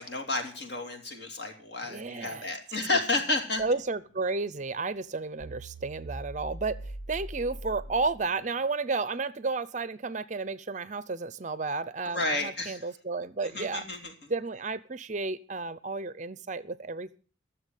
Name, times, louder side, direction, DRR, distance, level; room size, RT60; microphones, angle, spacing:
voice 1, 0.0-3.6 12.1-12.8 13.5-14.1, left 2 dB, 55° left, 4 dB, 3.0 m, -31 dB
voice 2, 1.9-2.5 3.6-13.9 14.3-17.2, right 3 dB, 35° right, 17 dB, 0.6 m, -32 dB
sound 1, 3.6-3.9 4.6-4.7 5.0-5.1 5.4-8.6, right 1 dB, 90° left, 2.0 m, -42 dB
14.0 x 7.1 x 9.2 m, 0.40 s
head